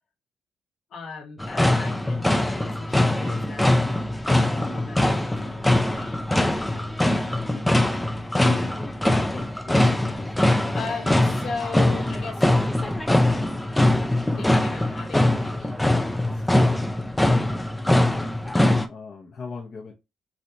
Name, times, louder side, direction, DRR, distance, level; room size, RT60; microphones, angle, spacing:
voice 1, 0.9-3.9 4.3-7.7 10.7-12.6 12.8-13.0 13.6-13.8 14.4-16.5, left 4 dB, 65° left, 1.1 m, -38 dB
sound 1, 1.4-18.9, left 1 dB, 10° left, 0.4 m, -22 dB
voice 2, 9.1-10.4 17.5-17.6 17.8-18.1 18.4-19.9, left 4 dB, 45° left, 0.7 m, -40 dB
3.2 x 2.8 x 2.7 m
cardioid pair, 90°, 0 cm